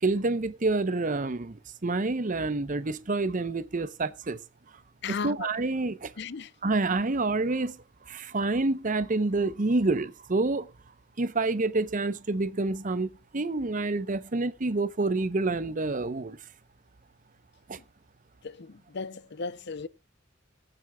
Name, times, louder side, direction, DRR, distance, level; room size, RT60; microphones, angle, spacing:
voice 1, 0.0-4.4 5.1-6.1 6.6-10.7 11.2-16.4 17.7-17.8, right 3 dB, 40° right, 0.8 m, -28 dB
voice 2, 5.0-5.5 6.2-6.5 18.4-19.9, left 5 dB, 60° left, 0.6 m, -36 dB
23.0 x 7.8 x 2.3 m
head